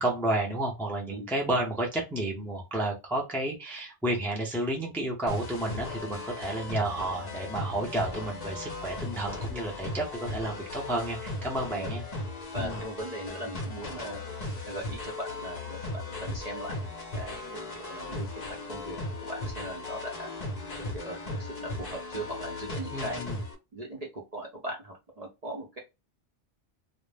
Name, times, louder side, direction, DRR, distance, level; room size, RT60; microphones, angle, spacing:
voice 1, 0.0-12.0 12.6-12.8 22.9-23.4, right 1 dB, ahead, -1 dB, 0.5 m, -31 dB
sound 1, 5.3-23.5, left 2 dB, 40° left, 0.7 m, -37 dB
voice 2, 12.5-14.2 14.7-16.8 17.1-18.3 18.7-20.3 20.8-23.2 23.7-25.8, right 1 dB, 40° right, -1 dB, 0.6 m, -39 dB
2.5 x 2.0 x 3.2 m, 0.25 s
omnidirectional pair, 1.2 m